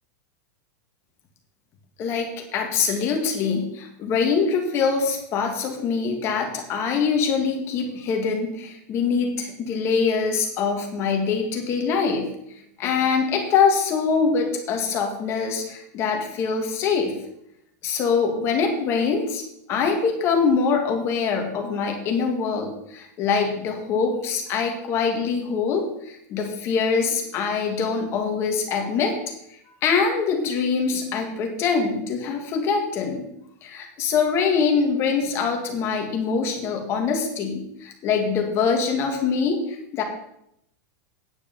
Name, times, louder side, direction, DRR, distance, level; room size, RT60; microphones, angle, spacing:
voice 1, 2.0-12.3 12.8-17.1 17.8-19.4 19.7-29.2 29.8-33.3 33.6-40.0, left 5 dB, 30° left, 3 dB, 2.0 m, -24 dB
9.6 x 6.8 x 6.9 m, 0.77 s
supercardioid pair, 170°, 9 cm